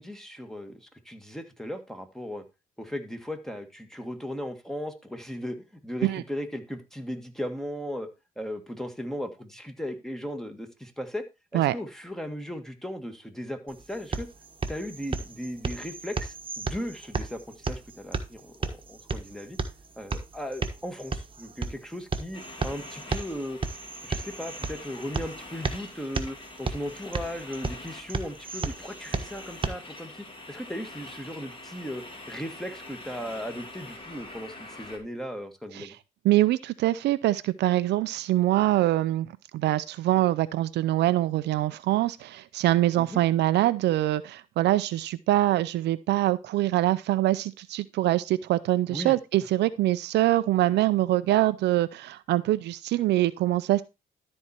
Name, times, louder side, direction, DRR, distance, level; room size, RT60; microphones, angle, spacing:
voice 1, 0.0-2.4 2.8-5.6 5.8-8.1 8.4-11.2 11.5-14.3 14.7-19.6 20.0-23.6 24.0-36.0 43.0-43.2 48.9-49.2, equal, ahead, 1.9 m, -37 dB
sound 1, 13.7-29.7, right 4 dB, 30° right, 1.4 m, -34 dB
sound 2, 22.3-35.0, left 2 dB, 30° left, 2.7 m, -45 dB
voice 2, 36.2-39.3 39.5-53.8, right 15 dB, 75° right, 0.5 m, -24 dB
13.0 x 4.3 x 4.3 m
supercardioid pair, 65°, 18 cm